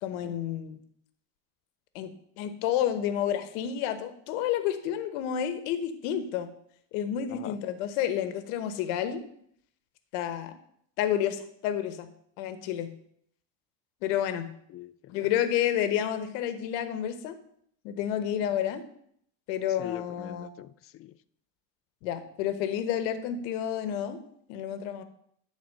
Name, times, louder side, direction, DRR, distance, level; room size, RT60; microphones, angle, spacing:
voice 1, 0.0-0.8 1.9-6.5 6.9-9.2 10.1-10.5 11.0-12.1 12.4-12.9 14.0-14.5 15.1-17.4 17.8-18.8 19.5-20.5 22.0-24.2 24.5-25.0, left 10 dB, 90° left, 10 dB, 1.1 m, -30 dB
voice 2, 14.7-15.3 19.8-21.2, left 12 dB, 40° left, 17 dB, 0.4 m, -42 dB
11.0 x 4.1 x 6.5 m, 0.68 s
cardioid pair, 125°, 37 cm